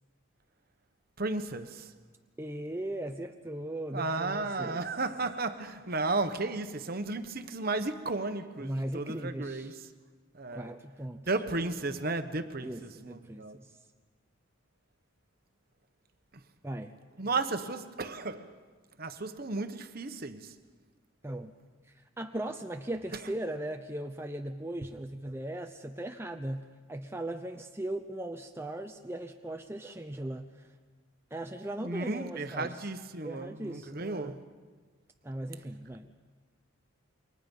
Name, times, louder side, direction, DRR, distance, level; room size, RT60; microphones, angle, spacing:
voice 1, 1.2-1.9 3.9-9.9 10.3-10.7 11.3-13.6 17.2-18.5 19.0-20.5 31.8-34.4, right 3 dB, 45° right, 1.1 m, -34 dB
voice 2, 2.4-4.8 8.6-9.8 10.5-11.3 12.6-13.7 16.6-16.9 21.2-21.5 21.9-30.5 31.3-32.7 33.2-34.4 35.2-36.1, right 1 dB, 10° right, 0.7 m, -38 dB
28.5 x 24.0 x 5.5 m
head